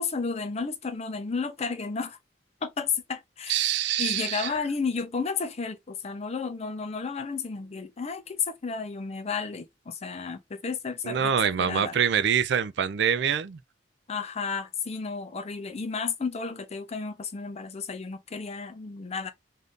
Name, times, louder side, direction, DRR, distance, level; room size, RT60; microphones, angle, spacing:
voice 1, 0.0-2.2 2.6-3.5 4.0-12.0 14.1-19.3, left 5 dB, 35° left, 0.5 m, -32 dB
voice 2, 3.5-4.5 11.0-13.6, right 8 dB, 65° right, 0.4 m, -25 dB
2.7 x 2.5 x 3.5 m
head